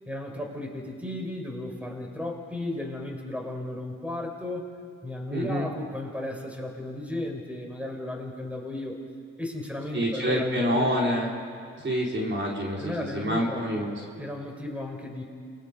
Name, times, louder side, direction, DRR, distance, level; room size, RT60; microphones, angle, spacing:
voice 1, 0.1-4.7 5.0-9.0 9.4-10.9 12.8-13.7 14.2-15.2, left 1 dB, 5° right, 1 dB, 5.6 m, -34 dB
voice 2, 5.3-5.7 9.9-11.4 11.8-14.0, equal, 40° right, -2 dB, 4.6 m, -27 dB
28.0 x 22.0 x 5.5 m, 2.1 s
supercardioid pair, 50°, 30 cm